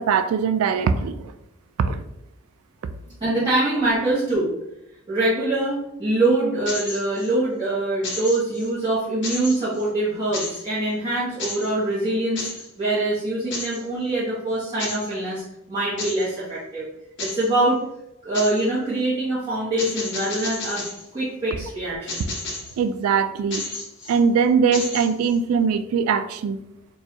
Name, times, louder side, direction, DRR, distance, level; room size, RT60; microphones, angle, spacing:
voice 1, 0.0-1.3 1.8-2.0 22.8-23.7 24.1-26.6, right 6 dB, 90° right, 12 dB, 0.3 m, -21 dB
voice 2, 3.2-4.5 5.1-12.5 12.8-15.4 15.7-16.9 17.2-17.8 18.2-20.9 21.1-22.3, right 2 dB, 20° right, -11 dB, 1.0 m, -24 dB
sound 1, 6.7-7.3 8.0-8.7 9.2-9.9 10.3-10.7 11.4-11.7 12.4-12.7 13.5-13.8 14.8-15.1 16.0-16.3 17.2-17.5 18.3-18.7 19.8-21.0 22.1-22.8 23.5-24.2 24.7-25.4, left 2 dB, 55° left, 0.9 m, -32 dB
4.6 x 2.3 x 2.8 m, 0.85 s
head